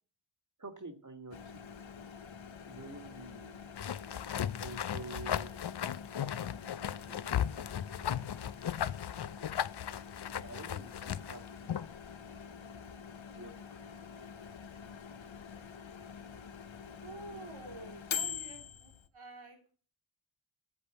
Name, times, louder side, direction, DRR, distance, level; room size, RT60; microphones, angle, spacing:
voice 1, 0.6-1.4 2.7-3.7 4.6-5.5 7.1-7.3 10.4-11.9 13.3-13.6, right 2 dB, 40° right, 7 dB, 1.6 m, -48 dB
Microwave oven, 1.3-19.1, left 7 dB, 75° left, 0.9 m, -46 dB
sound 1, 3.8-12.0, left 9 dB, 60° left, 0.5 m, -36 dB
voice 2, 17.0-19.7, right 2 dB, 90° right, 1 dB, 3.7 m, -49 dB
8.4 x 8.2 x 7.9 m, 0.41 s
wide cardioid pair, 50°, 46 cm